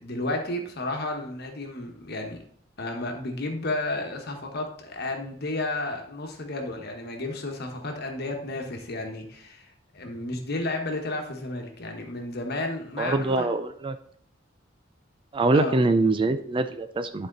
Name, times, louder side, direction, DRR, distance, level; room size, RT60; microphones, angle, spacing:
voice 1, 0.0-2.4 2.8-9.6 9.9-13.5 15.5-15.7, left 2 dB, 55° left, 3 dB, 1.4 m, -32 dB
voice 2, 13.0-14.0 15.3-17.3, right 2 dB, 25° right, 10 dB, 0.4 m, -24 dB
10.5 x 4.4 x 3.9 m, 0.63 s
head